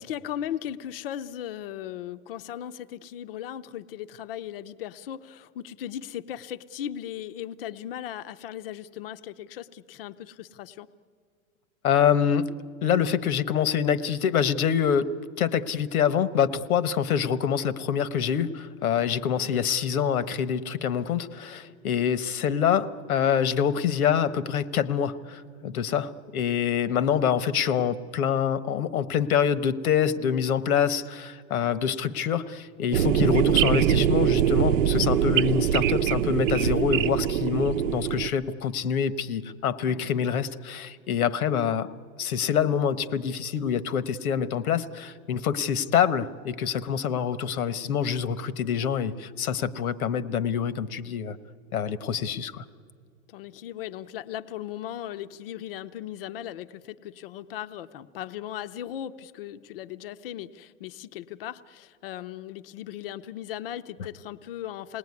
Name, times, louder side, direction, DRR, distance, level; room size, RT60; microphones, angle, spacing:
voice 1, 0.0-10.9 19.4-19.6 31.8-32.0 39.8-40.1 53.3-65.0, left 11 dB, 40° left, 13 dB, 0.7 m, -37 dB
voice 2, 11.8-12.5 12.8-15.1 15.4-41.9 42.2-51.4 51.7-52.6, left 8 dB, 85° left, 15 dB, 1.3 m, -26 dB
sound 1, 32.9-38.3, right 10 dB, 65° right, 0.8 m, -23 dB
28.0 x 19.5 x 9.6 m, 2.1 s
supercardioid pair, 165°, 42 cm